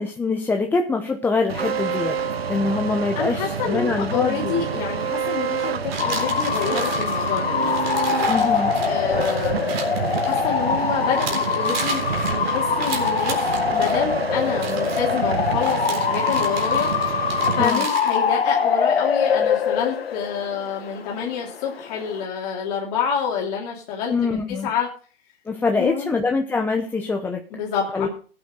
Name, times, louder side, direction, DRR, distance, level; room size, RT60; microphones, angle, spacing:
voice 1, 0.0-2.2 2.5-4.6 8.3-8.7 17.6-17.8 24.1-24.7 25.5-27.4 27.9-28.1, left 4 dB, 5° left, 3 dB, 0.8 m, -24 dB
sound 1, 1.5-17.7, right 6 dB, 80° right, 1.4 m, -28 dB
voice 2, 3.1-8.0 8.8-9.7 10.2-13.4 13.7-17.2 17.5-24.9 25.7-26.1 27.5-28.1, left 7 dB, 40° left, -2 dB, 2.9 m, -28 dB
sound 2, 5.9-10.8 11.1-14.0 14.5-15.1 15.6-18.2, right 5 dB, 50° right, 4.0 m, -34 dB
Bark / Motor vehicle (road) / Siren, 6.0-22.2, left 7 dB, 80° left, 1.7 m, -24 dB
15.5 x 8.7 x 3.9 m, 0.41 s
hypercardioid pair, 130°, 30 cm